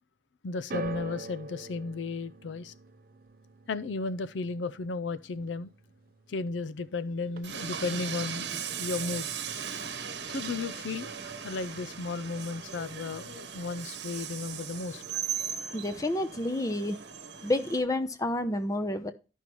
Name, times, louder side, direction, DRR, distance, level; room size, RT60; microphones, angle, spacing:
voice 1, 0.4-2.7 3.7-5.7 6.3-9.5 10.3-11.1 11.4-15.0, left 3 dB, 80° left, 0.5 m, -34 dB
sound 1, 0.7-7.0 7.2-7.9 8.6-8.7, right 3 dB, 50° right, 0.7 m, -44 dB
Train, 7.4-17.8, right 7 dB, 70° right, 1.0 m, -38 dB
voice 2, 15.7-17.0 17.4-19.1, left 1 dB, 20° left, 0.7 m, -29 dB
12.5 x 5.5 x 3.0 m
head